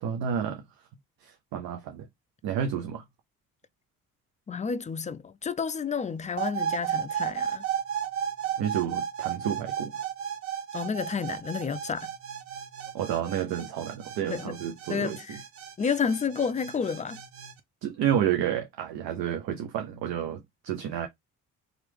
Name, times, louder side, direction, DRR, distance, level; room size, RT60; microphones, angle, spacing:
voice 1, 0.0-0.6 1.2-2.1 2.4-3.0 8.6-9.9 12.9-15.4 17.8-21.1, right 9 dB, 75° right, 0.7 m, -30 dB
voice 2, 4.5-7.6 10.7-12.1 14.3-14.6 14.9-15.4 15.8-17.2, left 6 dB, 20° left, 0.3 m, -30 dB
sound 1, 6.4-17.5, right 9 dB, 40° right, 0.7 m, -34 dB
2.9 x 2.4 x 3.3 m
supercardioid pair, 60°, 36 cm